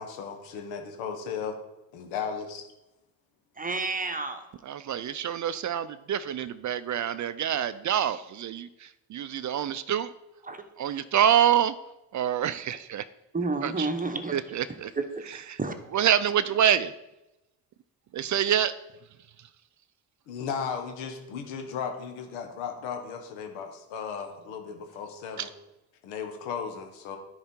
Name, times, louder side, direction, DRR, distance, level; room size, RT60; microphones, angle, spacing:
voice 1, 0.0-1.6 1.9-2.7 20.3-25.5 26.0-27.2, left 6 dB, 90° left, 1.3 m, -35 dB
voice 2, 3.6-4.4 10.4-10.6 13.3-14.3 14.9-15.2 15.6-16.0, right 3 dB, 20° right, 1.0 m, -30 dB
voice 3, 4.7-10.1 10.8-11.7 12.1-13.0 13.6-13.9 14.3-14.9 15.9-16.9 18.1-18.7 25.4-25.5, right 9 dB, 45° right, 0.4 m, -26 dB
9.9 x 4.7 x 4.4 m
supercardioid pair, 70°, 45 cm